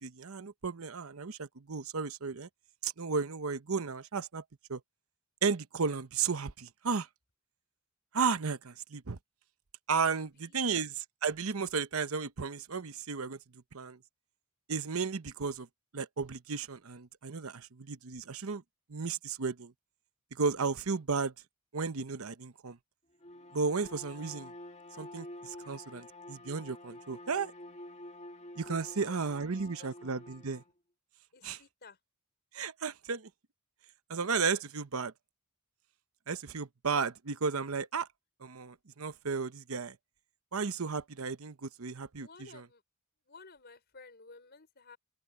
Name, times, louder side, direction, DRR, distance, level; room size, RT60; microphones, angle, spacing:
voice 1, 0.0-2.5 2.8-4.4 4.7-4.8 5.4-7.1 8.1-9.2 9.9-13.4 13.7-14.0 14.7-15.7 15.9-18.6 18.9-19.7 20.3-21.3 21.7-22.8 23.5-24.5 25.0-27.5 28.6-30.6 31.4-31.6 32.5-33.3 34.1-35.1 36.3-38.1 38.4-40.0 40.5-42.7, right 5 dB, 85° right, 0.9 m, -34 dB
voice 2, 10.1-10.6 28.9-29.2 29.5-29.9 31.3-32.0 42.2-42.8 43.3-45.0, left 3 dB, 50° left, 5.2 m, -54 dB
Bowed string instrument, 23.1-30.7, left 1 dB, 30° left, 1.9 m, -49 dB
open air
head